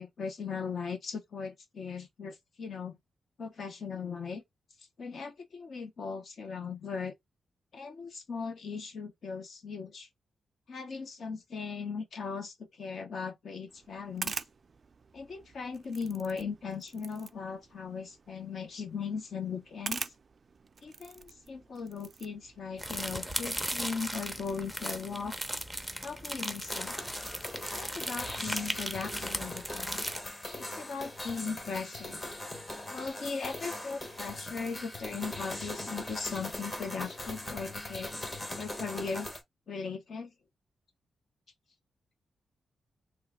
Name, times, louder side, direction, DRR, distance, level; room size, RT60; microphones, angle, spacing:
voice 1, 0.0-3.0 3.4-4.4 5.0-7.1 7.7-10.1 10.7-14.3 15.1-20.1 20.8-25.3 26.0-26.9 27.7-30.1 30.6-32.2 32.9-38.1 38.5-39.3 39.7-40.3, left 5 dB, 60° left, 0.9 m, -38 dB
sound 1, 13.7-24.7, right 5 dB, 45° right, 0.3 m, -46 dB
sound 2, 22.8-30.2, equal, ahead, 0.6 m, -37 dB
sound 3, 26.7-39.4, left 1 dB, 30° left, 1.0 m, -40 dB
3.0 x 2.3 x 3.6 m
cardioid pair, 100°, 0 cm